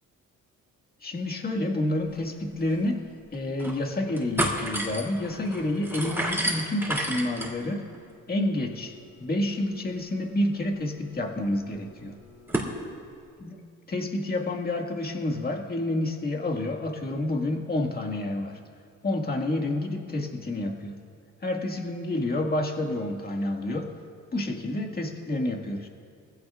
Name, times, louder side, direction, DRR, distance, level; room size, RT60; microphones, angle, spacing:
voice 1, 1.0-3.1 3.3-7.9 8.3-8.9 9.2-12.2 13.4-13.6 13.9-18.6 19.0-21.0 21.4-23.9 24.3-25.9, left 1 dB, 30° left, 2 dB, 1.9 m, -29 dB
sound 1, 2.4-2.5 2.7-2.8 3.3-3.8 4.1-12.7, right 1 dB, 10° right, 2.9 m, -34 dB
22.5 x 15.5 x 2.5 m, 2.3 s
cardioid pair, 90°, 30 cm